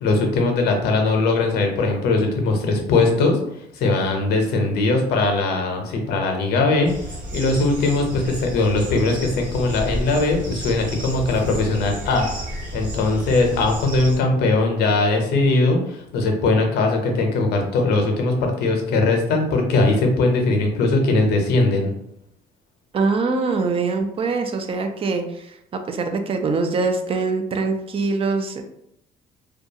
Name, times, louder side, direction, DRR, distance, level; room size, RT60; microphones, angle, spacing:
voice 1, 0.0-3.4 3.7-6.9 7.3-12.3 12.7-21.9, left 3 dB, 75° left, 3 dB, 0.6 m, -20 dB
sound 1, 6.8-14.2, equal, 55° right, 1.2 m, -32 dB
voice 2, 22.9-25.6 25.9-28.6, right 4 dB, 35° right, 6 dB, 0.4 m, -23 dB
2.3 x 2.3 x 2.7 m, 0.77 s
cardioid pair, 110°, 17 cm